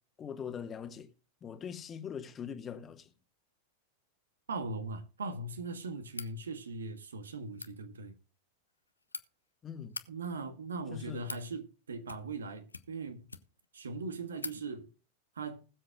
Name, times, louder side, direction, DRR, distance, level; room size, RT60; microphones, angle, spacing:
voice 1, 0.2-1.1 1.4-3.1 9.6-10.0 10.9-11.3, left 7 dB, 25° left, 1.6 m, -42 dB
voice 2, 4.5-8.1 10.1-13.3 13.7-14.9 15.4-15.6, right 3 dB, 70° right, 1.6 m, -39 dB
sound 1, 6.1-6.4 7.4-7.7 8.7-9.2 9.8-10.1 10.9-11.5 12.0-12.4 12.7-13.7 14.0-14.1 14.4-14.6, left 3 dB, 80° left, 0.8 m, -44 dB
20.5 x 7.6 x 2.4 m
figure-of-eight pair, 90°, 0 cm